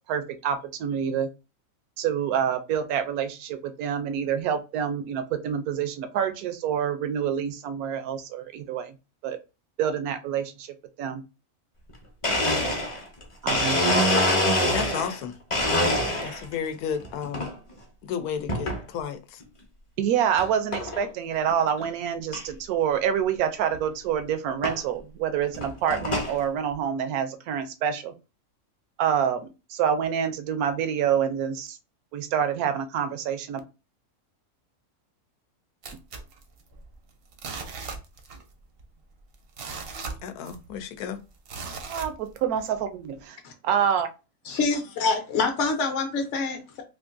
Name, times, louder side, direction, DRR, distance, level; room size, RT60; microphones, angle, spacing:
voice 1, 0.1-1.3 2.0-8.9 9.2-9.4 9.8-11.2 13.4-14.0 20.0-28.1 29.0-31.8 32.1-33.6 41.9-43.4 43.6-44.1, right 8 dB, 80° right, 1.0 m, -27 dB
Domestic sounds home sounds, 11.9-12.0 12.2-15.2 15.5-16.5 17.0-17.5 18.5-18.8 19.4-19.5 20.4-20.5 20.7-21.1 21.5-21.6 21.8-21.9 22.3-22.4 23.7-23.8 24.6-24.8 25.4-26.4, left 1 dB, 35° left, 0.6 m, -25 dB
voice 2, 14.7-15.3 16.2-17.5 18.0-19.4 40.2-41.2, left 8 dB, 90° left, 1.1 m, -32 dB
sound 1, 35.8-37.0 37.3-38.5 38.8-38.9 39.3-40.8 41.5-42.7 43.2-43.3, right 4 dB, 60° right, 0.6 m, -38 dB
voice 3, 44.5-46.8, left 4 dB, 60° left, 0.9 m, -26 dB
3.7 x 2.5 x 2.5 m
omnidirectional pair, 1.6 m